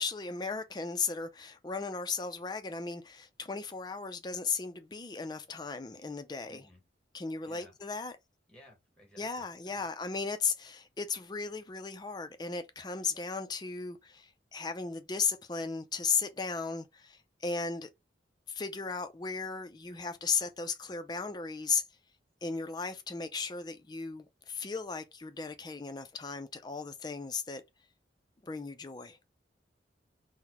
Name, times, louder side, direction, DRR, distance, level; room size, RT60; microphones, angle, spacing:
voice 1, 0.0-6.6 7.1-8.1 9.2-17.9 18.5-21.8 22.4-27.6 28.4-29.2, left 5 dB, 20° left, 0.4 m, -36 dB
voice 2, 6.5-6.9 7.4-7.8 8.5-9.9, left 1 dB, 5° left, 1.0 m, -58 dB
3.9 x 2.1 x 2.8 m
head